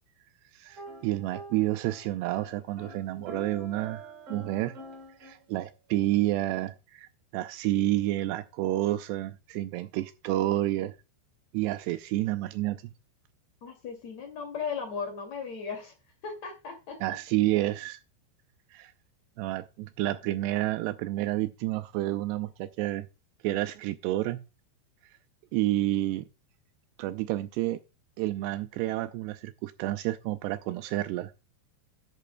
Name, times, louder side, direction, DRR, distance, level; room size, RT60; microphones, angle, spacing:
voice 1, 0.5-4.7 5.2-10.9 11.5-12.9 17.0-18.0 18.7-18.9 19.4-23.1 23.4-24.4 25.5-26.2 27.0-27.8 28.2-31.3, right 16 dB, 80° right, 2.6 m, -29 dB
sound 1, 0.7-2.0 2.3-5.4, right 1 dB, 35° right, 4.5 m, -45 dB
voice 2, 13.6-15.9 16.2-17.0, left 5 dB, 45° left, 3.2 m, -36 dB
11.5 x 11.0 x 2.2 m
omnidirectional pair, 5.1 m